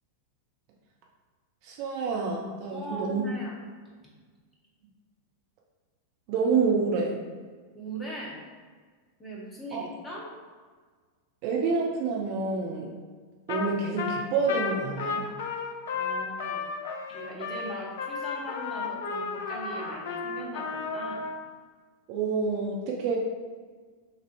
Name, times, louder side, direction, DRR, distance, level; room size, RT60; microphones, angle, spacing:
voice 1, 1.6-3.2 6.3-7.2 9.7-9.8 11.4-12.9 13.5-15.2 22.1-23.2, right 4 dB, 45° right, -1 dB, 0.6 m, -28 dB
voice 2, 2.7-3.6 7.7-8.4 9.2-10.3 15.9-16.7 17.1-21.3, right 1 dB, 10° left, -4 dB, 1.2 m, -40 dB
Trumpet, 13.5-13.7 14.0-21.4, left 5 dB, 55° left, 0.5 m, -33 dB
6.0 x 2.7 x 2.6 m, 1.5 s
figure-of-eight pair, 90°, 0 cm